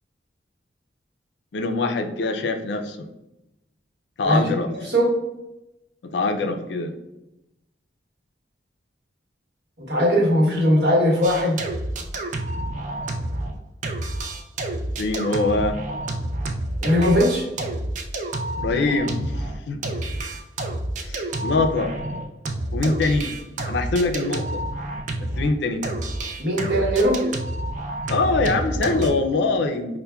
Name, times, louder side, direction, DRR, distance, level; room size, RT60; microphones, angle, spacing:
voice 1, 1.5-3.1 4.2-4.7 6.0-6.9 15.0-15.8 18.6-19.8 21.0-21.9 22.7-23.3 23.7-24.6 25.2-25.9 28.1-30.0, left 3 dB, 70° left, 6 dB, 0.4 m, -23 dB
voice 2, 9.9-11.6 16.8-17.5 26.4-27.2, equal, 65° right, -2 dB, 1.1 m, -19 dB
sound 1, 11.2-13.6 13.8-25.5 25.8-29.1, right 1 dB, 40° right, 0.3 m, -29 dB
5.4 x 2.1 x 2.3 m, 0.91 s
head